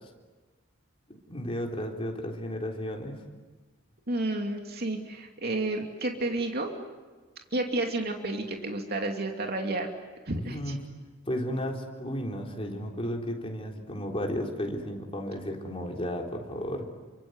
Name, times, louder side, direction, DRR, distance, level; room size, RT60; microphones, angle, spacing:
voice 1, 1.3-3.2 10.5-10.8 11.3-16.9, equal, 30° left, 0 dB, 3.8 m, -33 dB
voice 2, 4.1-6.8 7.5-9.9 10.3-10.8, right 2 dB, 50° right, 2 dB, 2.7 m, -31 dB
29.0 x 25.0 x 8.1 m, 1.3 s
head